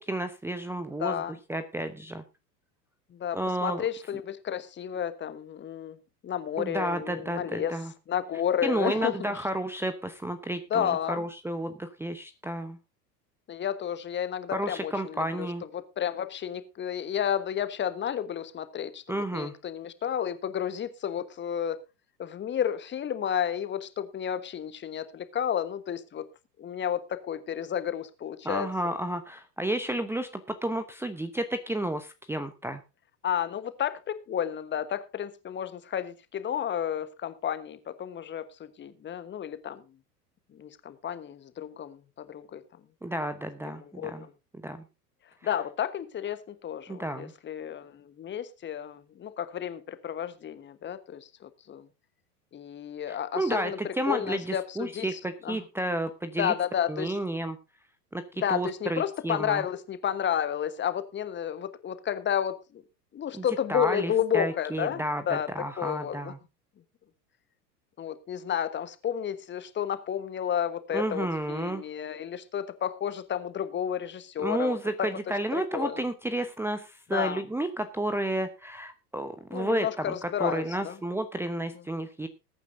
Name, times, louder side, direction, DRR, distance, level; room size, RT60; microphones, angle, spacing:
voice 1, 0.0-1.2 1.5-2.2 3.3-3.8 6.6-7.9 8.6-12.8 14.5-15.6 19.1-19.5 28.4-32.8 43.0-44.3 44.6-44.8 46.9-47.3 53.1-56.5 56.9-57.6 58.1-58.2 58.5-59.6 63.3-66.4 70.9-71.8 74.4-82.3, right 1 dB, 5° right, 0.9 m, -31 dB
voice 2, 1.0-1.3 3.1-6.0 6.2-7.8 8.1-9.3 10.7-11.2 13.5-15.5 15.7-21.8 22.2-26.3 26.6-28.7 33.2-39.8 40.5-42.6 43.6-44.3 45.4-51.9 52.5-55.6 56.4-57.1 58.4-62.8 63.1-65.5 65.8-66.3 68.0-75.1 75.5-76.0 77.1-77.4 79.5-80.9, left 9 dB, 25° left, 1.3 m, -31 dB
20.5 x 9.2 x 2.7 m
figure-of-eight pair, 85°, 48 cm